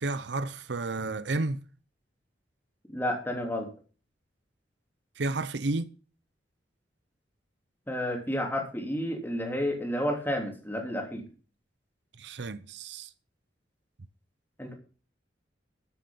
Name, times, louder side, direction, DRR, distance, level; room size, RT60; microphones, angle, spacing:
voice 1, 0.0-1.6 5.2-5.9 12.2-13.1, right 2 dB, 70° right, 0.7 m, -31 dB
voice 2, 2.9-3.7 7.9-11.2 14.6-14.7, equal, 10° left, 3.0 m, -31 dB
13.0 x 7.7 x 5.3 m
head